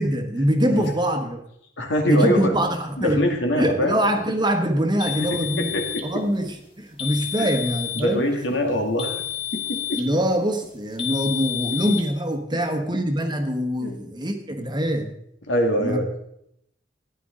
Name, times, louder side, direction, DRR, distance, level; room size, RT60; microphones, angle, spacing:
voice 1, 0.0-1.4 2.1-3.2 3.6-5.7 6.0-8.3 9.9-15.1 15.8-16.0, equal, 25° right, 5 dB, 1.3 m, -23 dB
voice 2, 1.8-2.5 3.0-4.0 5.2-6.0 7.4-7.5 8.0-9.2 9.5-10.0 12.5-12.6 13.8-14.0 15.5-16.1, equal, 70° left, 3 dB, 2.2 m, -24 dB
sound 1, 5.0-6.1 7.0-8.1 9.0-10.1 11.0-12.1, left 12 dB, 30° left, 1.7 m, -30 dB
14.0 x 10.5 x 3.8 m, 0.74 s
head